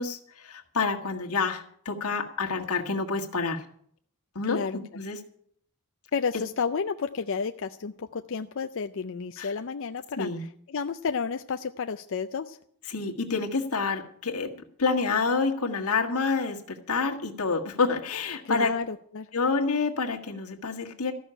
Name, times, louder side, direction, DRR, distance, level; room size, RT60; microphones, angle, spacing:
voice 1, 0.0-3.6 4.4-4.6 4.9-5.2 9.4-9.5 10.2-10.5 12.9-14.5 14.8-18.7 19.3-21.1, left 4 dB, 80° left, 2 dB, 1.7 m, -28 dB
voice 2, 4.5-4.8 6.1-10.3 10.7-12.6 18.4-19.3, left 5 dB, 60° left, 8 dB, 0.5 m, -31 dB
14.0 x 6.4 x 9.9 m, 0.64 s
head